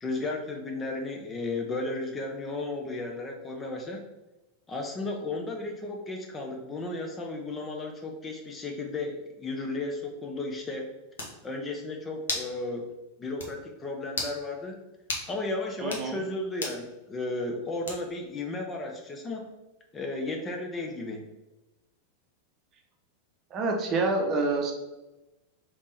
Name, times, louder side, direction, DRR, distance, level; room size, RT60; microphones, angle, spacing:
voice 1, 0.0-4.0 4.7-10.9 11.4-12.9 13.2-14.8 15.3-19.5 19.9-21.3, left 2 dB, 20° left, 2 dB, 0.6 m, -34 dB
sound 1, 10.7-10.8 11.2-11.4 12.3-12.5 12.9-13.0 13.4-13.5 14.1-14.4 15.1-15.3 15.8-16.1 16.6-16.8 17.9-18.2, left 3 dB, 65° left, 0.8 m, -33 dB
voice 2, 15.8-16.2 23.5-24.7, right 3 dB, 30° right, 2 dB, 0.8 m, -27 dB
3.6 x 3.0 x 3.9 m, 1.0 s
figure-of-eight pair, 90°, 0 cm